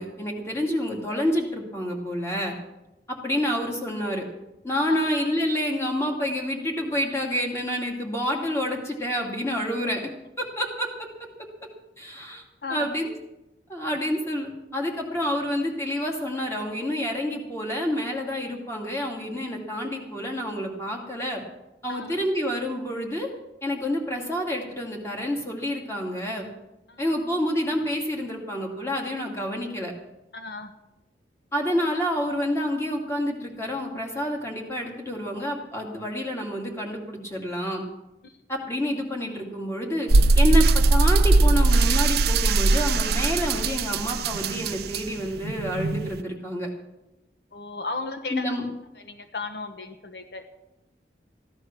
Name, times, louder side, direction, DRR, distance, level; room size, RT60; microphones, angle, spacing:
voice 1, 0.0-2.6 3.1-4.2 4.6-10.1 10.4-11.1 12.0-12.4 12.7-13.1 13.7-21.4 21.8-23.3 23.6-26.5 27.0-29.9 31.5-37.8 38.5-46.7 48.3-48.6, equal, 15° left, 0 dB, 2.4 m, -28 dB
voice 2, 21.9-22.2 26.9-27.1 30.3-30.7 38.2-38.4 47.5-48.5 49.0-50.5, left 3 dB, 70° left, 6 dB, 1.2 m, -35 dB
sound 1, 40.1-46.2, right 3 dB, 65° right, 0.5 m, -20 dB
15.5 x 11.5 x 6.0 m, 0.95 s
head